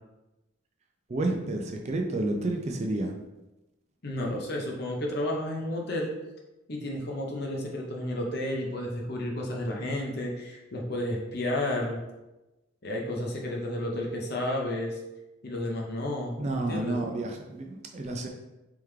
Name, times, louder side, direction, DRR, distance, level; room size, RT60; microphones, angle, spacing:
voice 1, 1.1-3.1 16.4-18.3, right 2 dB, 30° right, 2 dB, 0.4 m, -30 dB
voice 2, 4.0-6.1 6.7-12.0 12.8-15.0 15.4-17.0, left 1 dB, 50° left, -1 dB, 0.7 m, -32 dB
3.5 x 3.4 x 3.2 m, 1.0 s
head